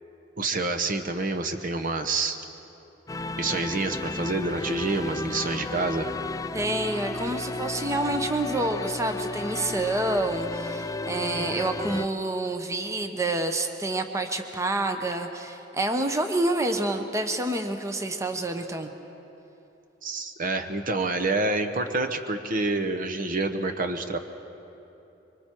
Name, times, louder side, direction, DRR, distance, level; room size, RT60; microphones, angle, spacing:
voice 1, 0.4-2.4 3.3-6.1 11.2-11.5 20.0-24.2, right 2 dB, 45° right, 6 dB, 0.9 m, -28 dB
sound 1, 3.1-12.1, left 2 dB, 20° left, 0.4 m, -33 dB
voice 2, 6.5-18.9, right 2 dB, 15° right, 6 dB, 0.9 m, -28 dB
25.0 x 23.5 x 4.5 m, 2.9 s
head